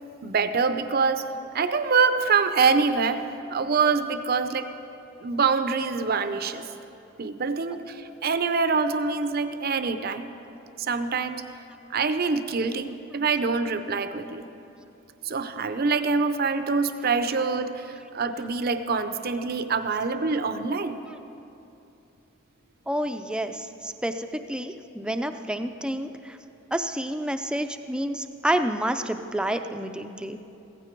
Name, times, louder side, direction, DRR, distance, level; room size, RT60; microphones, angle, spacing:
voice 1, 0.2-1.3 1.5-3.2 3.5-4.7 5.2-6.6 7.2-10.3 10.8-11.4 11.9-14.5 15.2-20.9, right 5 dB, 50° right, 10 dB, 0.6 m, -25 dB
voice 2, 22.9-26.4 26.7-30.4, right 1 dB, 5° right, 8 dB, 0.5 m, -29 dB
15.5 x 15.5 x 4.6 m, 2.8 s
head